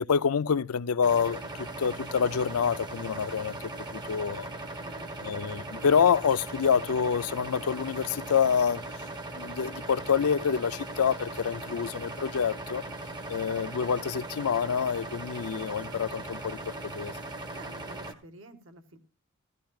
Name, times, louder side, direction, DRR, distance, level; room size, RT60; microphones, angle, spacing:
voice 1, 0.0-3.6 3.9-4.5 5.2-9.1 9.3-12.8 13.3-17.2, left 7 dB, 85° left, 0.5 m, -27 dB
sound 1, 1.0-18.1, right 2 dB, 20° right, 1.0 m, -39 dB
voice 2, 4.8-5.4 17.5-19.0, right 1 dB, 60° right, 1.5 m, -50 dB
16.0 x 13.5 x 2.4 m
head